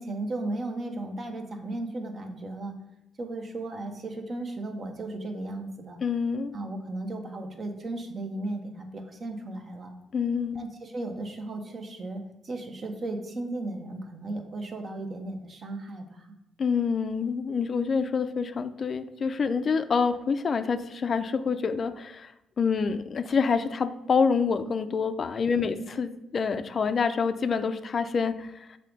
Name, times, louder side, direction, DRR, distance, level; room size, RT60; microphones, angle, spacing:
voice 1, 0.0-2.8 3.2-6.0 6.5-9.9 10.5-16.3, right 2 dB, 45° right, 4 dB, 1.0 m, -35 dB
voice 2, 6.0-6.6 10.1-10.6 16.6-22.3 22.6-28.8, left 5 dB, 45° left, 10 dB, 0.4 m, -27 dB
6.5 x 3.5 x 5.2 m, 0.89 s
cardioid pair, 90°, 0 cm